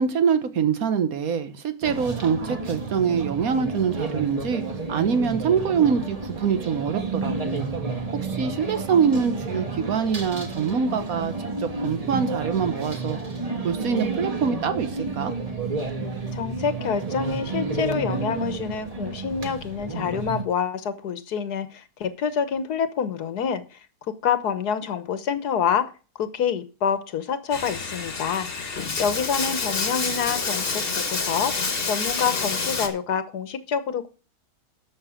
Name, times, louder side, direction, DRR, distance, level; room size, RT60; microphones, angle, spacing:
voice 1, 0.0-4.6 4.9-7.7 8.1-11.3 11.6-13.2 13.6-15.3, right 6 dB, 65° right, 10 dB, 1.5 m, -24 dB
sound 1, 1.8-20.4, right 3 dB, 25° right, 1.4 m, -31 dB
voice 2, 16.3-23.8 24.1-25.9 26.2-28.5 29.0-30.8 31.1-31.5 31.8-34.1, left 7 dB, 85° left, 12 dB, 1.6 m, -27 dB
Bathtub (filling or washing), 27.5-32.9, left 4 dB, 40° left, 1.6 m, -28 dB
12.0 x 7.2 x 5.0 m, 0.35 s
omnidirectional pair, 1.6 m